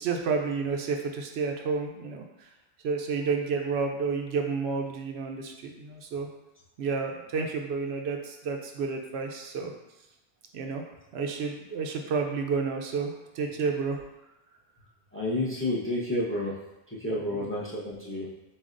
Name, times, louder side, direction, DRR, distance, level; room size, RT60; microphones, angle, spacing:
voice 1, 0.0-2.2 2.8-6.3 6.8-9.7 10.5-10.8 11.1-14.0 17.4-17.5, right 5 dB, 75° right, 3 dB, 0.8 m, -30 dB
voice 2, 15.1-16.5 17.0-18.3, left 1 dB, 15° left, -7 dB, 0.6 m, -30 dB
7.0 x 2.3 x 2.5 m, 0.96 s
omnidirectional pair, 1.1 m